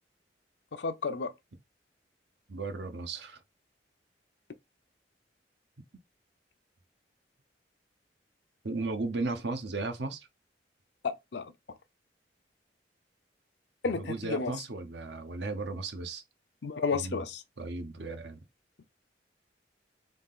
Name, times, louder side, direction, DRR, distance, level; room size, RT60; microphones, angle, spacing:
voice 1, 0.7-1.3 11.0-11.5 13.8-14.5 16.6-17.4, left 4 dB, 70° left, 0.5 m, -32 dB
voice 2, 2.5-3.4 8.6-10.3 13.9-16.2 16.9-17.2 17.6-18.4, right 3 dB, 70° right, 0.8 m, -35 dB
3.6 x 2.4 x 3.6 m
head